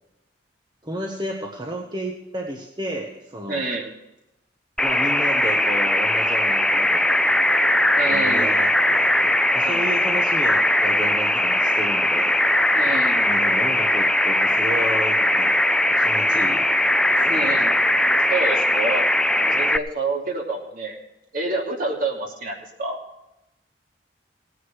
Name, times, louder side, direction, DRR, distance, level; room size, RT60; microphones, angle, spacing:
voice 1, 0.8-3.7 4.8-7.1 8.0-12.4 13.2-15.6 16.0-16.7 17.1-17.6, right 1 dB, 25° right, 1 dB, 1.3 m, -32 dB
voice 2, 3.5-3.9 8.0-8.5 9.6-9.8 12.7-13.4 17.3-17.8 18.3-19.0 19.4-21.0 21.3-23.0, right 3 dB, 50° right, 0 dB, 3.0 m, -28 dB
sound 1, 4.8-19.8, left 1 dB, 5° left, 0.5 m, -20 dB
18.5 x 9.8 x 4.7 m, 0.92 s
head